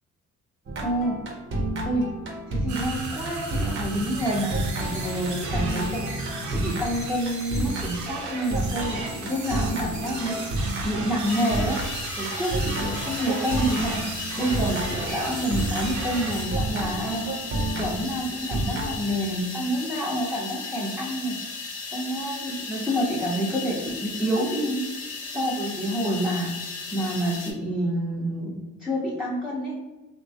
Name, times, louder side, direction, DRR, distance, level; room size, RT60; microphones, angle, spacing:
sound 1, 0.7-16.1 16.5-19.0, right 1 dB, 40° right, 0.7 m, -31 dB
voice 1, 0.8-1.2 1.8-2.1 2.5-6.0 6.5-10.4 10.8-11.8 12.2-14.0 14.4-17.3 17.8-21.4 21.9-24.8 25.3-26.5 26.9-29.7, equal, ahead, -5 dB, 0.6 m, -28 dB
sound 2, 2.7-16.5, right 2 dB, 75° right, 0.8 m, -35 dB
sound 3, 11.2-27.5, left 4 dB, 80° left, 0.7 m, -36 dB
3.0 x 2.2 x 2.7 m, 1.1 s
cardioid pair, 90°, 30 cm